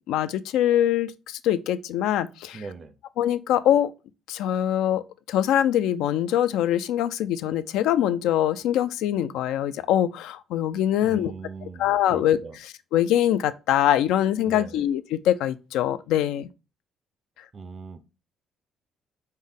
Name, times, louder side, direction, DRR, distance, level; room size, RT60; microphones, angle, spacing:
voice 1, 0.1-2.6 3.2-3.9 4.3-11.3 11.8-12.4 12.6-16.5, left 11 dB, 90° left, 0.3 m, -23 dB
voice 2, 2.5-2.9 11.0-12.6 14.4-14.9 17.5-18.0, right 4 dB, 35° right, 0.4 m, -39 dB
5.5 x 2.1 x 3.5 m
cardioid pair, 150°, 0 cm